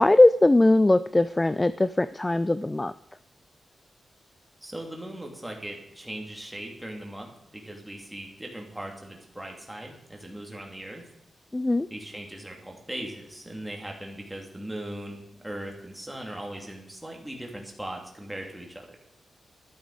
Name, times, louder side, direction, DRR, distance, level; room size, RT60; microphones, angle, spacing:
voice 1, 0.0-2.9 11.5-11.9, left 2 dB, 15° left, 14 dB, 0.3 m, -20 dB
voice 2, 4.6-11.0 11.9-19.0, right 1 dB, 5° right, 1 dB, 2.9 m, -39 dB
12.0 x 11.5 x 5.0 m, 0.83 s
wide cardioid pair, 130°, 0 cm